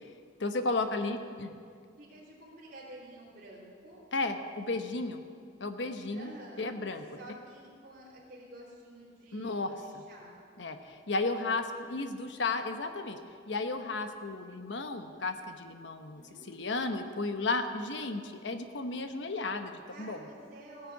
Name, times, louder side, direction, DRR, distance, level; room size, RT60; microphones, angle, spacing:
voice 1, 0.4-1.5 4.1-5.2 5.6-6.3 6.6-7.0 9.3-10.0 10.6-13.2 13.5-20.2, left 3 dB, 70° left, 7 dB, 0.9 m, -34 dB
voice 2, 2.0-4.0 6.1-6.7 7.1-10.3 16.1-16.8 19.9-20.9, right 1 dB, 45° right, -10 dB, 3.4 m, -50 dB
17.0 x 6.7 x 8.2 m, 2.2 s
head